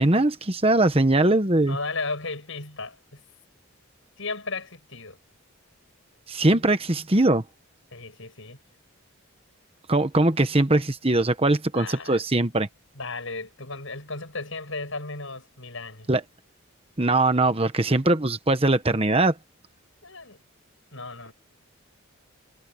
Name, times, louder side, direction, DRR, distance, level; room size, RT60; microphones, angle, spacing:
voice 1, 0.0-1.8 6.3-7.4 9.9-12.7 16.1-16.2 17.0-19.3, right 2 dB, 25° right, 1.2 m, -21 dB
voice 2, 1.7-3.2 4.2-5.2 7.9-8.6 11.7-12.2 12.9-16.1 20.0-20.4 20.9-21.3, left 3 dB, 65° left, 8.0 m, -35 dB
head